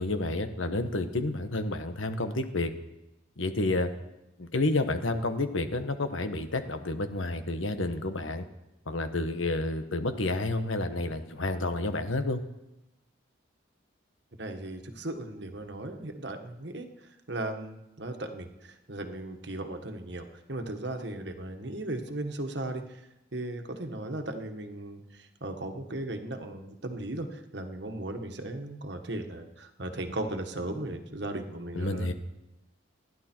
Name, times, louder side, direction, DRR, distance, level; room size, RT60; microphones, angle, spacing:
voice 1, 0.0-2.7 3.4-3.9 4.4-8.5 8.9-12.4 31.7-32.1, left 2 dB, 80° left, 8 dB, 1.3 m, -30 dB
voice 2, 14.4-23.0 23.3-32.1, right 1 dB, 60° right, 5 dB, 1.5 m, -37 dB
28.0 x 11.0 x 4.6 m, 0.96 s
head